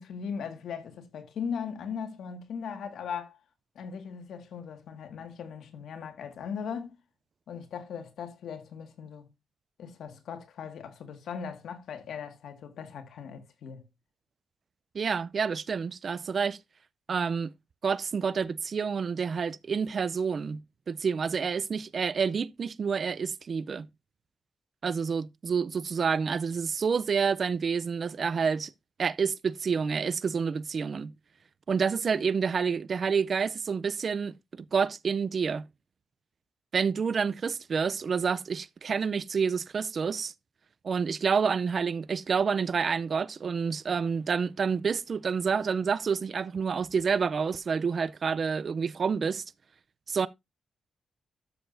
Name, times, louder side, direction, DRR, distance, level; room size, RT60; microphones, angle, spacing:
voice 1, 0.0-3.4 3.8-7.0 7.5-9.3 9.8-13.8, left 6 dB, 80° left, 1.8 m, -38 dB
voice 2, 14.9-16.6 17.1-17.5 17.8-20.6 20.9-23.9 24.8-28.7 29.0-31.1 31.7-35.7 36.7-40.3 40.8-49.4 50.1-50.3, right 6 dB, 45° right, 0.5 m, -28 dB
13.0 x 6.8 x 2.6 m
cardioid pair, 130°, 0 cm